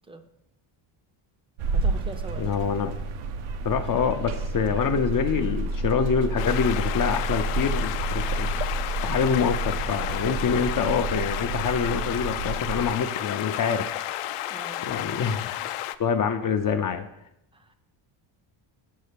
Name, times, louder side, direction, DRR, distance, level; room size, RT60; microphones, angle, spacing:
sound 1, 1.6-12.9, right 2 dB, 75° right, 0.8 m, -30 dB
voice 1, 1.7-2.5 14.5-14.8 17.5-17.7, right 1 dB, 10° right, 8 dB, 0.5 m, -41 dB
voice 2, 2.4-2.9 3.6-8.5 9.0-14.0 14.8-15.6 16.0-17.1, left 6 dB, 40° left, 5 dB, 0.6 m, -26 dB
sound 2, 6.4-16.0, left 13 dB, 85° left, 0.6 m, -32 dB
7.1 x 5.6 x 6.7 m, 0.81 s
cardioid pair, 150°, 50 cm